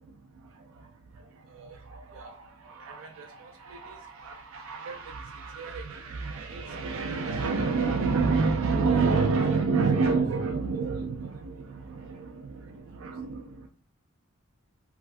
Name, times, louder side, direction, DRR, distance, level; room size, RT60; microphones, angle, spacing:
voice 1, 1.5-13.7, right 4 dB, 65° right, 4 dB, 0.3 m, -29 dB
3.2 x 2.4 x 2.4 m, 0.43 s
head